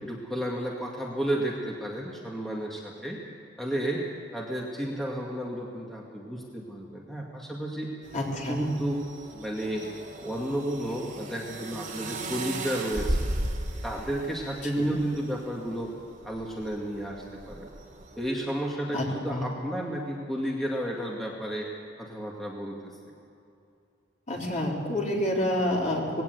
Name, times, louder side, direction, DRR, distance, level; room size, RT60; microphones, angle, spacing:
voice 1, 0.0-3.2 3.6-4.0 4.3-7.9 8.5-9.0 9.3-9.9 10.2-13.3 13.8-15.9 16.2-17.7 18.2-21.7 22.0-22.9, right 1 dB, ahead, -3 dB, 2.2 m, -32 dB
sound 1, 8.0-18.3, right 1 dB, 40° right, 3.0 m, -37 dB
voice 2, 8.1-8.7 14.6-14.9 18.9-19.4 24.3-26.2, left 1 dB, 40° left, -2 dB, 3.9 m, -28 dB
20.0 x 17.0 x 8.1 m, 2.6 s
head